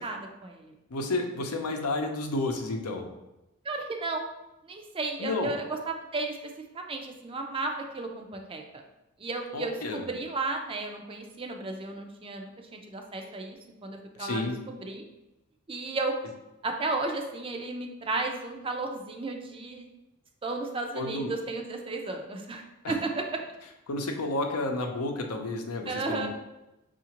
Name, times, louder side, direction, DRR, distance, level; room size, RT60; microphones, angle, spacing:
voice 1, 0.0-0.7 3.6-4.3 4.6-6.4 6.7-8.6 9.2-15.0 15.7-16.1 16.6-19.9 20.4-23.2 25.9-26.3, right 3 dB, 25° right, 2 dB, 0.4 m, -34 dB
voice 2, 0.9-3.1 5.2-5.5 9.5-10.1 14.2-14.6 20.9-21.3 22.8-23.0 23.9-26.3, left 2 dB, 90° left, 3 dB, 0.6 m, -31 dB
5.6 x 2.5 x 2.9 m, 0.95 s
head